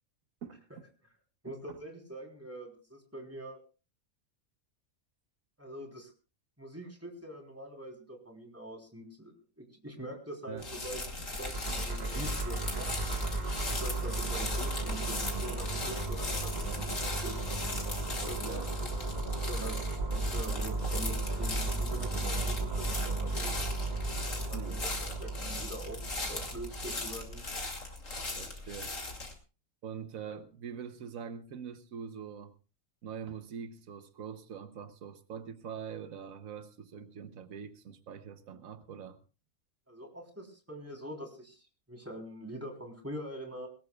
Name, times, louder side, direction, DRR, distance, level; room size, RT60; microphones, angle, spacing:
voice 1, 0.4-0.8 1.5-1.6 10.5-10.7 18.4-18.7 19.1-19.2 24.5-24.8 28.4-28.9 29.8-32.5 33.0-39.2, right 7 dB, 90° right, 1.3 m, -44 dB
voice 2, 1.4-3.6 5.6-6.1 6.6-11.0 11.3-12.9 13.2-17.4 18.2-18.9 19.3-19.8 20.1-23.6 24.3-27.4 39.9-43.7, right 1 dB, 10° right, 3.7 m, -44 dB
sound 1, 10.6-29.3, left 2 dB, 70° left, 3.0 m, -39 dB
sound 2, 11.2-27.4, right 2 dB, 30° right, 1.7 m, -35 dB
22.0 x 18.5 x 2.3 m
omnidirectional pair, 1.4 m